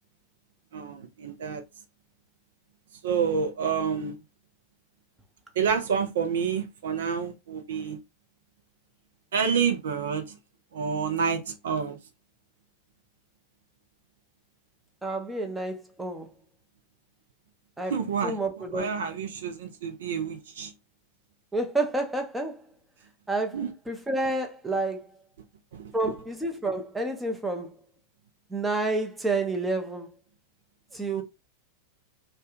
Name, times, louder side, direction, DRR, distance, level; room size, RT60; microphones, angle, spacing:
voice 1, 0.7-1.6 3.0-4.2 5.5-8.0 9.3-10.4 10.7-12.0 17.9-20.7 23.5-23.7 25.7-26.1 31.1-31.2, right 6 dB, 60° right, 0.5 m, -29 dB
voice 2, 15.0-16.3 17.8-17.9 18.2-18.9 21.5-22.6 23.3-23.6 23.9-25.0 25.9-27.7 28.5-30.1 30.9-31.2, right 2 dB, 10° right, 0.6 m, -29 dB
2.2 x 2.1 x 3.0 m
figure-of-eight pair, 90°, 0 cm